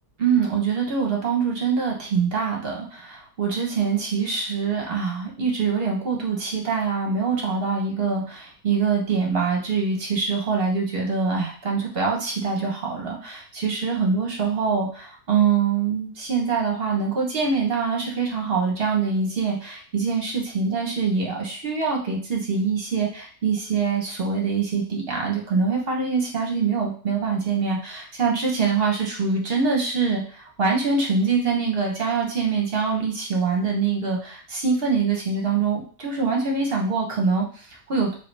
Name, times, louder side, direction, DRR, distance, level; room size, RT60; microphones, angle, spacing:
voice 1, 0.2-38.1, right 5 dB, 40° right, -1 dB, 1.0 m, -24 dB
4.9 x 2.7 x 3.3 m, 0.42 s
omnidirectional pair, 1.8 m